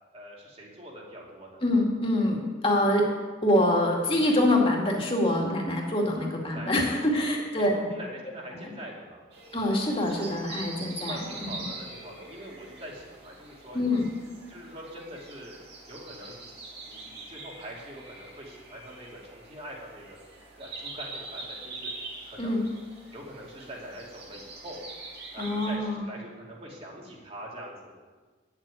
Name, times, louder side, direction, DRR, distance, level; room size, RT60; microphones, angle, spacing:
voice 1, 0.1-1.6 6.5-7.3 7.6-9.2 11.1-13.8 14.5-15.6 15.9-20.2 20.6-21.9 22.3-22.6 23.1-24.9 25.3-27.9, equal, 30° right, -2 dB, 2.6 m, -43 dB
voice 2, 1.6-3.0 3.4-7.7 9.5-11.5 13.7-14.1 22.4-22.6 25.4-26.1, left 1 dB, 30° left, -1 dB, 2.2 m, -25 dB
sound 1, 9.3-25.8, right 3 dB, 55° right, 2.7 m, -43 dB
10.0 x 7.4 x 9.0 m, 1.4 s
head